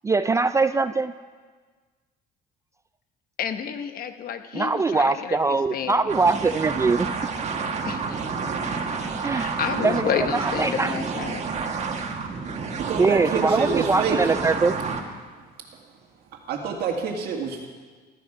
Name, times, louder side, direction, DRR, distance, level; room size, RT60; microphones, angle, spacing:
voice 1, 0.0-1.1 4.5-7.1 9.2-9.5 9.8-10.1 10.4-11.0 12.9-14.7, right 4 dB, 15° right, 11 dB, 0.3 m, -22 dB
voice 2, 3.4-6.1 7.9-8.2 9.2-11.4, left 8 dB, 60° left, 9 dB, 1.0 m, -30 dB
sound 1, 6.1-15.0, right 5 dB, 40° right, 1.7 m, -29 dB
voice 3, 12.8-14.2 16.5-17.7, right 5 dB, 70° right, 0 dB, 1.8 m, -27 dB
15.5 x 12.5 x 4.8 m, 1.5 s
cardioid pair, 110°, 17 cm